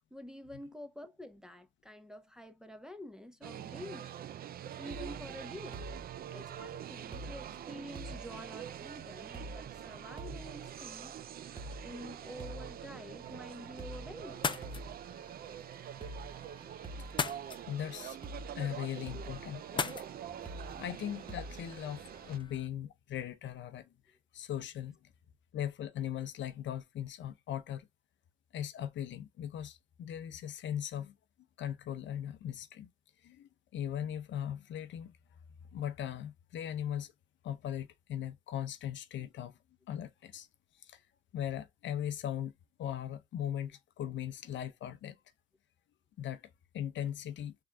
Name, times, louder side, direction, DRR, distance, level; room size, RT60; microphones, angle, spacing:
voice 1, 0.0-4.2 4.8-5.8 6.3-11.2 11.8-14.4, left 1 dB, 5° right, 0.8 m, -48 dB
sound 1, 3.4-22.4, right 10 dB, 50° right, 0.4 m, -45 dB
sound 2, 4.9-22.6, right 1 dB, 25° right, 1.1 m, -49 dB
sound 3, 14.3-22.7, left 5 dB, 25° left, 0.4 m, -42 dB
voice 2, 17.7-18.2 18.5-20.1 20.8-23.9 24.3-25.0 25.5-27.9 28.5-31.1 31.6-32.9 33.2-35.2 35.7-37.1 37.4-39.6 39.9-40.5 40.8-41.0 41.3-42.5 42.8-45.2 46.2-47.6, left 10 dB, 70° left, 0.7 m, -39 dB
3.6 x 3.3 x 3.3 m
cardioid pair, 90°, 20 cm